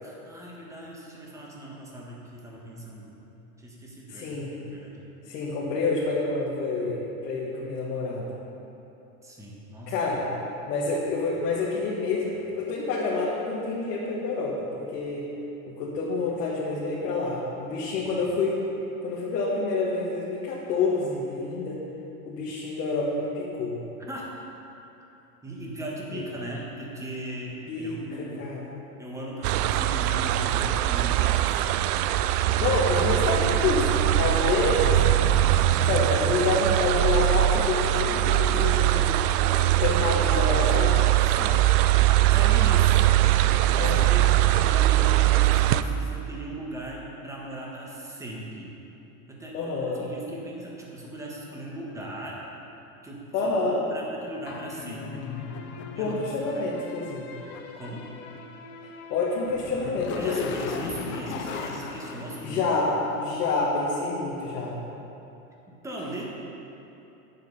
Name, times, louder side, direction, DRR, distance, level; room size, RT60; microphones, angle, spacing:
voice 1, 0.0-3.2 3.6-5.0 9.2-10.0 24.1-24.3 25.4-28.5 29.0-31.7 32.6-32.7 41.2-41.7 42.1-43.2 43.6-48.7 49.3-52.4 53.0-55.4 55.9-56.2 57.8-58.1 60.2-62.6 65.7-66.2, right 1 dB, 5° right, -3 dB, 1.3 m, -38 dB
voice 2, 4.1-4.6 5.3-8.3 9.9-10.3 10.7-15.3 15.8-18.6 19.0-21.8 22.3-23.8 26.1-26.2 27.7-28.7 32.6-35.0 35.8-39.2 39.7-41.0 43.7-44.0 49.5-50.1 53.3-53.8 55.9-57.3 59.1-60.5 62.4-64.8, left 3 dB, 85° left, -6 dB, 1.9 m, -28 dB
sound 1, 29.4-45.8, right 13 dB, 70° right, 0.5 m, -22 dB
sound 2, 54.5-63.2, left 5 dB, 25° left, 0.4 m, -37 dB
9.4 x 7.9 x 5.4 m, 2.9 s
supercardioid pair, 150°, 47 cm